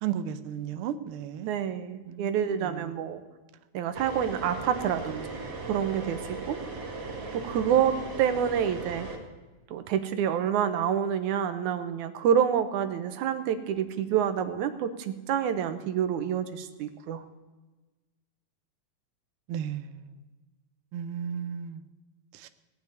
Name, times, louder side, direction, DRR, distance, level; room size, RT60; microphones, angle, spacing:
voice 1, 0.0-1.5 2.1-2.9 19.5-20.1 20.9-21.8 22.3-22.5, right 9 dB, 75° right, 1.3 m, -34 dB
voice 2, 1.5-3.2 3.7-5.3 5.6-6.6 7.3-9.1 9.7-17.2, right 9 dB, 90° right, 2.5 m, -28 dB
sound 1, 3.9-9.2, right 3 dB, 40° right, 2.7 m, -38 dB
18.0 x 7.0 x 9.4 m
omnidirectional pair, 3.3 m